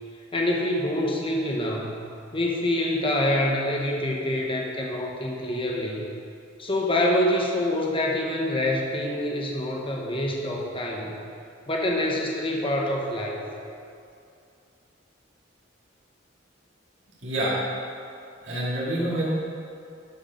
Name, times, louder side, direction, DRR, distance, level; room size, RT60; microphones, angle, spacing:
voice 1, 0.3-2.0 2.3-6.0 6.6-11.1 11.7-13.4, left 1 dB, 30° left, -1 dB, 1.2 m, -26 dB
voice 2, 17.2-17.6 18.4-19.3, right 1 dB, 70° right, -7 dB, 2.4 m, -26 dB
12.5 x 4.9 x 5.3 m, 2.5 s
head